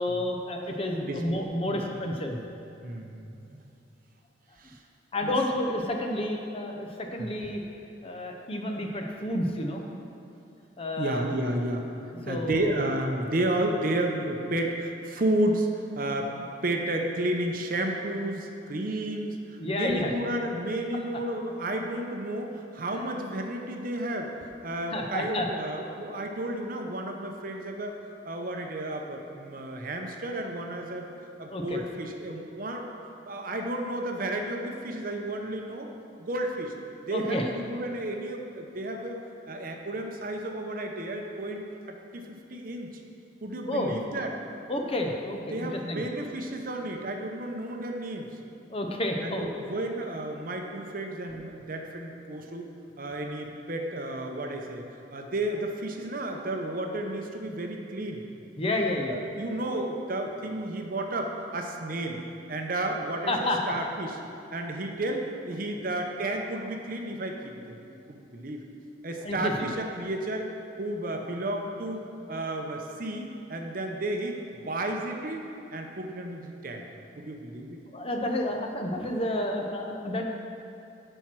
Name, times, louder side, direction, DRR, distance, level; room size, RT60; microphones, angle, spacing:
voice 1, 0.0-2.4 5.1-7.6 8.0-9.8 10.8-11.2 12.3-12.8 19.6-20.1 24.9-25.5 31.5-31.8 37.1-37.5 43.7-44.0 44.7-46.0 48.7-49.5 58.6-59.2 63.3-63.6 69.2-69.7 77.9-80.3, left 1 dB, 30° left, 2 dB, 0.7 m, -30 dB
voice 2, 2.8-3.6 4.6-4.8 5.2-5.3 7.2-7.3 11.0-11.8 12.3-16.3 16.6-24.3 24.6-28.0 28.2-31.1 31.4-32.9 33.2-35.9 36.2-36.7 37.0-39.2 39.5-42.9 43.4-44.4 45.5-48.3 49.2-52.7 53.0-54.8 55.1-58.2 58.8-62.2 62.5-64.1 64.5-68.6 69.0-70.5 70.8-72.0 72.3-74.4 74.6-75.4 75.7-76.8 77.2-77.8, right 1 dB, 45° right, 3 dB, 0.7 m, -32 dB
10.0 x 4.5 x 6.1 m, 2.7 s
head